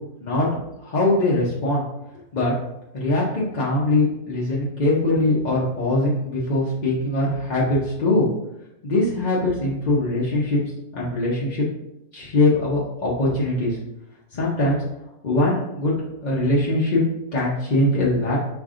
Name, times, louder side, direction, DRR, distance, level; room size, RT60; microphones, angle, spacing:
voice 1, 0.8-1.8 2.3-2.5 2.9-8.3 8.8-10.6 10.9-11.6 12.1-13.8 14.3-14.8 15.2-15.9 16.2-17.0 17.3-18.4, left 2 dB, 45° left, -6 dB, 0.6 m, -21 dB
5.1 x 3.4 x 2.5 m, 0.88 s
omnidirectional pair, 1.7 m